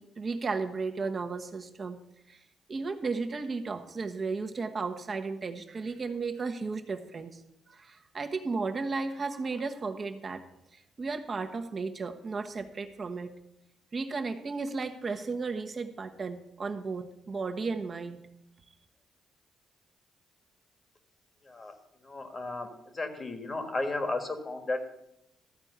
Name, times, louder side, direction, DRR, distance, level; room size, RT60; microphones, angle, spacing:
voice 1, 0.0-2.0 2.3-2.4 2.7-7.4 7.7-10.4 10.7-13.4 13.9-18.3, right 4 dB, 40° right, 6 dB, 1.2 m, -34 dB
voice 2, 22.0-22.7 22.9-24.8, left 2 dB, 30° left, 7 dB, 1.6 m, -33 dB
13.5 x 4.5 x 8.1 m, 0.83 s
cardioid pair, 90°, 0 cm